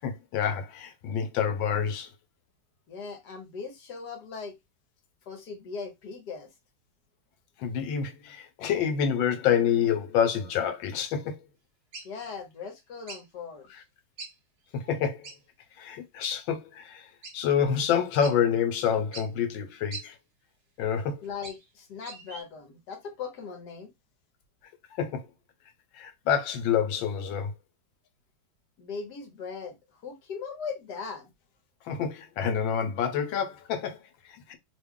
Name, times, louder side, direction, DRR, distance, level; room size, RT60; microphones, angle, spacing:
voice 1, 0.0-2.1 7.6-11.3 14.7-15.3 15.8-20.2 20.8-21.2 24.9-25.3 25.9-27.5 31.8-34.6, left 8 dB, 85° left, 1.5 m, -28 dB
voice 2, 2.9-4.5 5.3-6.5 12.0-13.8 21.2-23.9 28.8-31.3, left 5 dB, 65° left, 1.4 m, -39 dB
sound 1, 11.9-12.1 13.1-13.2 14.2-14.3 14.6-14.7 15.2-15.4 16.2-16.3 17.2-17.3 17.8-17.9 18.2-18.4 19.1-19.3 19.9-20.0 21.0-21.7 22.0-22.4, right 3 dB, 50° right, 0.6 m, -41 dB
3.3 x 2.2 x 3.6 m
omnidirectional pair, 2.0 m